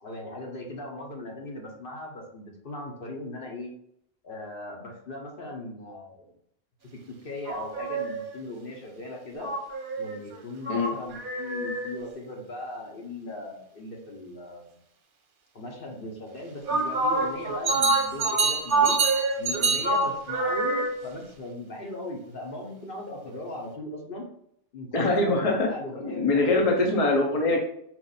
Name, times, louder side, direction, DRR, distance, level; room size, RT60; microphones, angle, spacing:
voice 1, 0.0-3.7 4.2-6.3 7.1-9.5 10.0-14.8 15.5-19.0 19.4-24.2 24.7-27.0, left 1 dB, 60° left, 0 dB, 1.1 m, -38 dB
sound 1, 7.5-8.3 9.4-12.0 16.7-21.2, right 3 dB, 55° right, 0.8 m, -26 dB
voice 2, 24.9-25.7 26.0-27.6, left 2 dB, 40° left, 1 dB, 0.7 m, -23 dB
4.6 x 2.5 x 4.0 m, 0.73 s
omnidirectional pair, 1.1 m